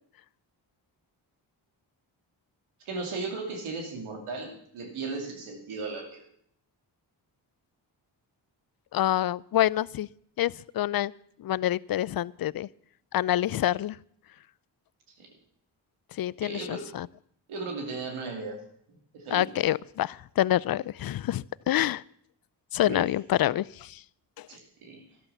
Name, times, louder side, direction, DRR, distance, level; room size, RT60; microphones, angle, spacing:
voice 1, 2.8-6.3 15.2-15.3 16.4-16.8 17.5-18.6 19.1-19.5 22.8-23.1 24.5-25.0, right 3 dB, 90° right, 3 dB, 2.7 m, -36 dB
voice 2, 8.9-10.1 10.4-11.1 11.4-12.7 13.1-14.0 16.1-17.1 19.3-22.0 22.7-24.0 24.4-24.5, left 13 dB, 50° left, 23 dB, 0.5 m, -27 dB
12.5 x 11.0 x 6.9 m, 0.65 s
supercardioid pair, 45°, 48 cm